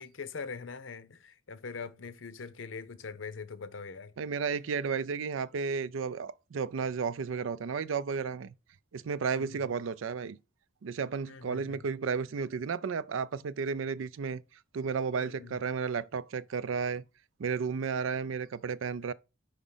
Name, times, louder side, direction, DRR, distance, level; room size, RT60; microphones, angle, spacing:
voice 1, 0.0-4.1 9.3-9.6 11.3-11.8 15.2-15.6, left 5 dB, 80° left, 0.7 m, -42 dB
voice 2, 4.2-8.5 8.9-10.4 10.8-14.4 14.7-17.0 17.4-19.1, right 5 dB, 90° right, 0.4 m, -33 dB
5.1 x 5.0 x 5.5 m
head